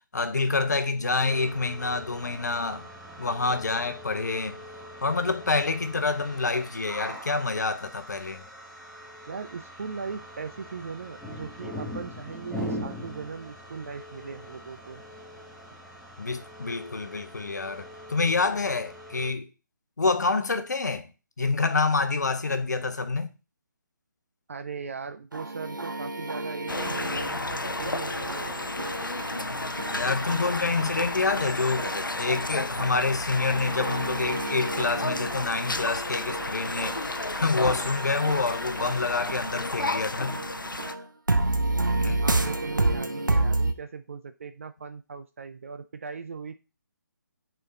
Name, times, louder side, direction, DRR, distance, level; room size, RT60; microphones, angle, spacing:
voice 1, 0.1-2.9 3.2-4.6 5.0-8.5 16.2-19.5 20.0-21.1 21.4-23.3 29.9-37.0 37.3-40.4 42.0-42.2, left 3 dB, 60° left, 0.9 m, -27 dB
sound 1, 1.2-19.3, equal, ahead, 0.9 m, -42 dB
voice 2, 9.3-15.0 24.5-29.0 42.2-46.5, right 5 dB, 40° right, 0.4 m, -39 dB
sound 2, 25.3-43.7, right 2 dB, 75° right, 0.9 m, -31 dB
sound 3, 26.7-40.9, left 2 dB, 85° left, 0.6 m, -32 dB
8.5 x 4.4 x 3.9 m
figure-of-eight pair, 145°, 11 cm